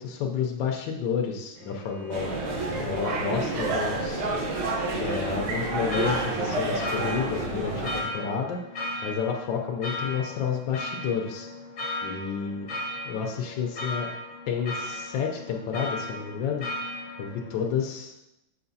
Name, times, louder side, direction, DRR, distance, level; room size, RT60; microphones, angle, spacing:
voice 1, 0.0-2.4 2.8-4.3 4.9-8.6 9.0-11.5 12.0-12.7 13.1-14.1 14.5-16.7 17.2-18.3, left 6 dB, 70° left, 1 dB, 1.3 m, -30 dB
Bowed string instrument, 1.5-6.3, right 1 dB, 70° right, 2.0 m, -46 dB
sound 1, 2.1-8.0, right 2 dB, 85° right, 1.9 m, -29 dB
sound 2, 5.1-17.7, left 2 dB, 50° left, 1.0 m, -36 dB
6.4 x 5.8 x 2.7 m, 0.86 s
omnidirectional pair, 2.3 m